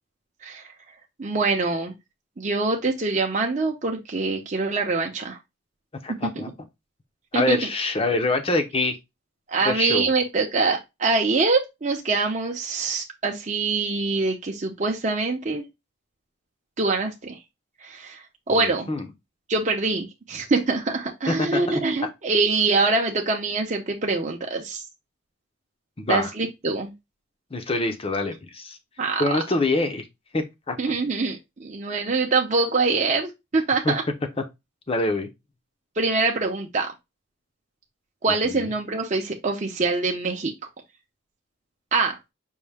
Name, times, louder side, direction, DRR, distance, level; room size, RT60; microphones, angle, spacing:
voice 1, 1.2-1.9 2.4-5.4 6.2-6.4 7.3-7.6 9.5-15.7 16.8-17.4 17.8-18.9 19.5-24.8 26.1-26.9 29.0-29.2 30.8-34.0 36.0-36.9 38.2-40.5 41.9-42.2, right 3 dB, 35° right, 0.6 m, -24 dB
voice 2, 6.0-6.5 7.3-9.0 9.6-10.1 18.5-19.1 21.3-21.8 26.0-26.3 27.5-28.8 29.2-30.1 30.3-31.0 33.8-34.0 34.9-35.3 38.4-38.7, left 2 dB, 25° left, 0.6 m, -25 dB
5.4 x 2.7 x 3.3 m
head